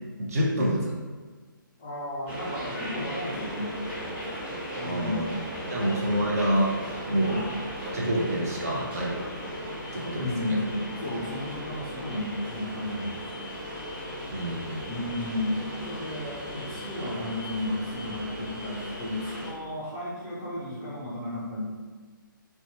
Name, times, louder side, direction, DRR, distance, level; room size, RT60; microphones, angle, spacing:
voice 1, 0.2-0.9 4.8-7.4 7.8-9.1 9.9-10.6 14.3-14.8, equal, 45° right, -4 dB, 0.6 m, -28 dB
voice 2, 1.8-4.1 4.7-5.4 5.7-6.0 7.0-7.6 10.1-13.2 14.9-21.6, left 1 dB, 15° left, -7 dB, 0.4 m, -33 dB
sound 1, 2.3-19.5, equal, 10° right, 1.2 m, -37 dB
2.6 x 2.1 x 2.8 m, 1.4 s
figure-of-eight pair, 135°, 12 cm